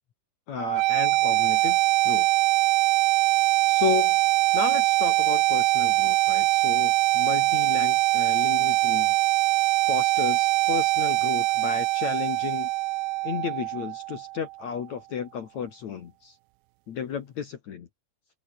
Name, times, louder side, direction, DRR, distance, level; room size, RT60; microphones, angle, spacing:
voice 1, 0.5-1.8 2.0-2.3 3.7-4.2 4.5-9.1 9.9-12.7 13.2-16.4 16.9-17.9, left 7 dB, 55° left, 2.2 m, -33 dB
sound 1, 0.6-14.5, right 22 dB, 85° right, 2.3 m, -23 dB
open air
omnidirectional pair, 5.1 m